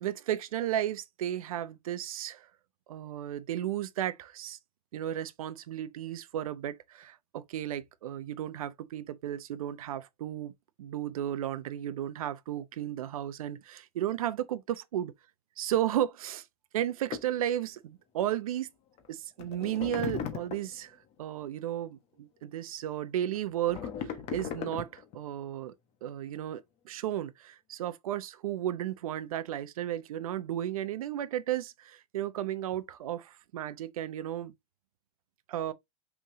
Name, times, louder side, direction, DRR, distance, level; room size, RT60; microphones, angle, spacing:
voice 1, 0.0-2.5 2.9-4.6 4.9-10.5 10.8-15.1 15.6-16.5 16.7-18.7 19.1-25.7 26.0-34.5 35.5-35.7, right 11 dB, 75° right, 0.8 m, -34 dB
sound 1, 17.1-17.3 19.0-19.1 19.4-20.8 23.3-25.1, left 8 dB, 35° left, 1.2 m, -37 dB
5.5 x 3.5 x 2.7 m
hypercardioid pair, 130°, 18 cm